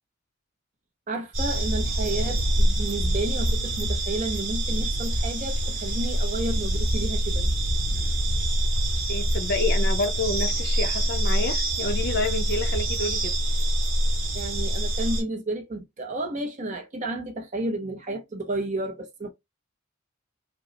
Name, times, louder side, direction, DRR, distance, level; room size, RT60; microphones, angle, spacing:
voice 1, 1.1-7.5 7.9-8.2 14.3-19.3, right 2 dB, 35° right, 0.6 m, -32 dB
sound 1, 1.3-15.2, right 1 dB, 65° right, 2.4 m, -25 dB
voice 2, 9.1-13.3, left 2 dB, 50° left, 0.6 m, -29 dB
5.1 x 2.0 x 2.8 m
head